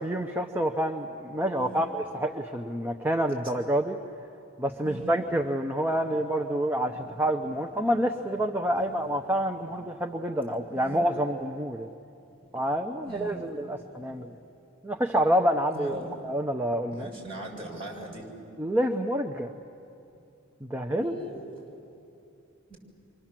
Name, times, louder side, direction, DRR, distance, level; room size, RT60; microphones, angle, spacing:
voice 1, 0.0-4.0 4.6-11.9 12.5-14.3 14.8-17.1 18.6-19.5 20.6-21.1, equal, 10° right, 3 dB, 0.7 m, -28 dB
voice 2, 1.5-1.8 4.8-5.2 6.8-7.2 8.7-8.9 10.6-11.0 13.0-13.4 14.1-14.2 15.7-16.1 16.9-18.2 21.0-21.5 22.7-22.8, right 2 dB, 25° right, -2 dB, 6.1 m, -41 dB
30.0 x 24.5 x 7.5 m, 2.7 s
head